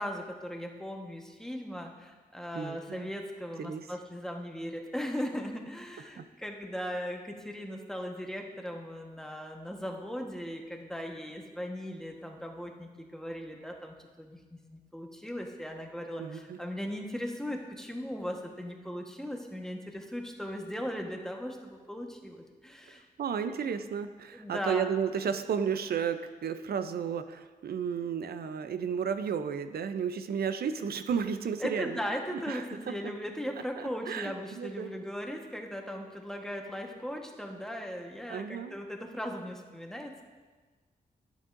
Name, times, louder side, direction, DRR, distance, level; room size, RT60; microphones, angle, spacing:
voice 1, 0.0-14.4 14.7-23.1 24.3-24.9 31.6-40.2, equal, 5° left, 2 dB, 1.3 m, -38 dB
voice 2, 2.5-3.1 3.6-3.9 6.2-6.3 16.2-16.6 23.2-32.0 32.3-32.9 33.8-34.9 38.3-38.8, right 7 dB, 70° right, 10 dB, 0.6 m, -33 dB
11.0 x 9.1 x 2.6 m, 1.3 s
cardioid pair, 65°, 16 cm